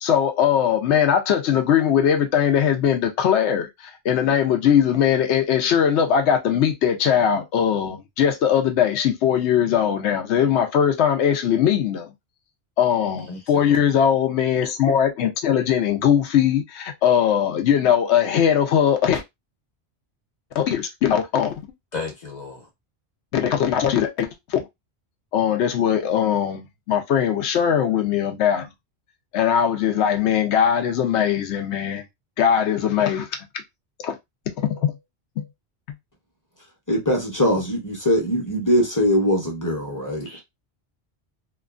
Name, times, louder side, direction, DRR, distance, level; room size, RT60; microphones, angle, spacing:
voice 1, 0.0-12.1 12.8-19.2 20.5-21.5 23.3-24.6 25.3-28.7 29.3-32.0 32.4-33.3 34.0-34.2 34.6-35.0 35.4-35.5, left 8 dB, 90° left, 0.9 m, -20 dB
voice 2, 13.3-13.8 21.9-22.7 40.2-40.4, left 4 dB, 45° left, 1.0 m, -34 dB
voice 3, 36.9-40.3, equal, 20° left, 0.7 m, -21 dB
2.9 x 2.3 x 2.4 m
omnidirectional pair, 1.1 m